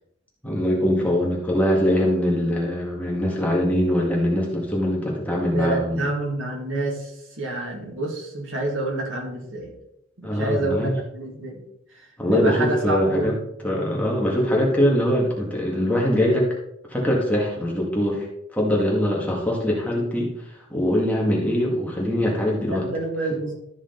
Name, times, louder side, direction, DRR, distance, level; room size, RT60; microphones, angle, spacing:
voice 1, 0.4-6.0 10.2-10.9 12.2-13.3 13.6-16.5 16.9-18.3 18.5-20.3 20.7-22.9, equal, 10° left, -3 dB, 2.0 m, -22 dB
voice 2, 5.5-7.1 7.4-9.7 10.2-11.6 12.3-13.4 22.6-23.5, right 2 dB, 85° right, 0 dB, 2.3 m, -27 dB
13.0 x 5.0 x 4.0 m, 0.80 s
head